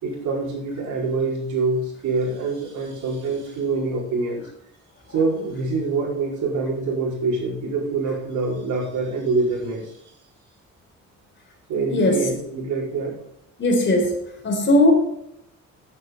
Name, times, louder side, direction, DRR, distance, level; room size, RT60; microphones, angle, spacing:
voice 1, 0.0-4.4 5.1-10.0 11.7-13.1, right 3 dB, 80° right, -4 dB, 5.0 m, -25 dB
voice 2, 13.6-14.1 14.4-14.9, left 1 dB, 40° left, 1 dB, 4.1 m, -18 dB
9.6 x 8.6 x 5.4 m, 0.78 s
cardioid pair, 90°, 30 cm